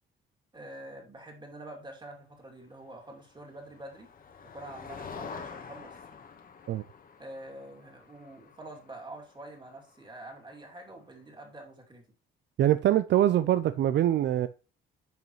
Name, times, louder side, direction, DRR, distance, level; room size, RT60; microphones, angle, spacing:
voice 1, 0.5-4.1 4.5-6.0 7.2-12.0, right 1 dB, 25° right, 2.6 m, -46 dB
Motor vehicle (road), 3.1-10.9, left 6 dB, 45° left, 1.3 m, -47 dB
voice 2, 12.6-14.5, right 12 dB, 65° right, 0.5 m, -24 dB
9.1 x 5.5 x 3.1 m
cardioid pair, 90°, 20 cm